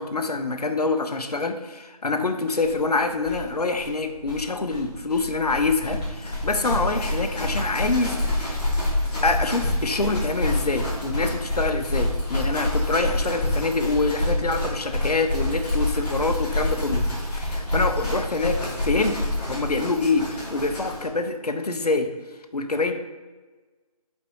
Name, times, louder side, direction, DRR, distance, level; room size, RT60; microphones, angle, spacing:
voice 1, 0.0-8.6 9.2-17.1 17.4-19.2 19.5-22.1 22.5-22.9, left 3 dB, 80° left, 7 dB, 0.8 m, -25 dB
sound 1, 2.6-2.7 2.9-3.0 3.2-21.1, left 1 dB, 15° left, 1.7 m, -27 dB
5.8 x 4.5 x 4.7 m, 1.3 s
figure-of-eight pair, 160°, 20 cm